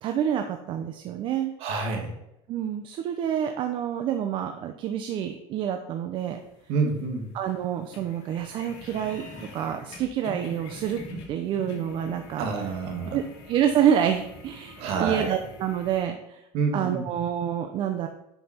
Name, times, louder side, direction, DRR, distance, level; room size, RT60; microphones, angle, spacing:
voice 1, 0.0-1.5 2.5-6.4 7.3-11.0 11.3-12.5 13.1-16.4 16.7-18.1, right 9 dB, 50° right, 6 dB, 0.7 m, -27 dB
voice 2, 1.6-2.1 6.7-7.3 12.4-13.2 14.8-15.4 16.5-17.1, right 4 dB, 65° right, 3 dB, 2.3 m, -28 dB
sound 1, 6.2-16.0, left 1 dB, 65° left, 3.2 m, -44 dB
9.6 x 5.8 x 4.4 m, 0.85 s
cardioid pair, 130°, 11 cm